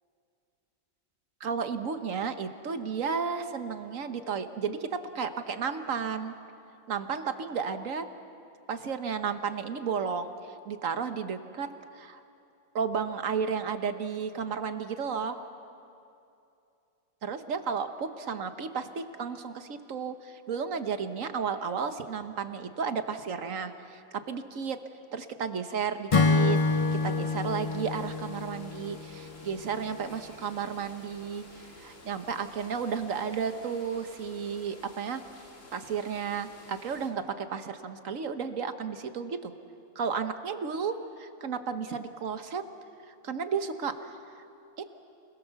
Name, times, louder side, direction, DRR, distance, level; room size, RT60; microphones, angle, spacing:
voice 1, 1.4-6.3 6.9-8.1 8.7-11.7 11.9-12.2 12.7-15.4 17.2-24.8 25.1-35.2 35.7-39.5 39.9-42.6 43.1-44.2 44.8-44.9, right 6 dB, 65° right, 9 dB, 1.5 m, -33 dB
Acoustic guitar / Strum, 26.1-29.5, left 3 dB, 35° left, 0.5 m, -27 dB
sound 1, 26.2-37.1, left 1 dB, 60° left, 3.2 m, -52 dB
29.5 x 21.5 x 6.9 m, 2.7 s
omnidirectional pair, 1.5 m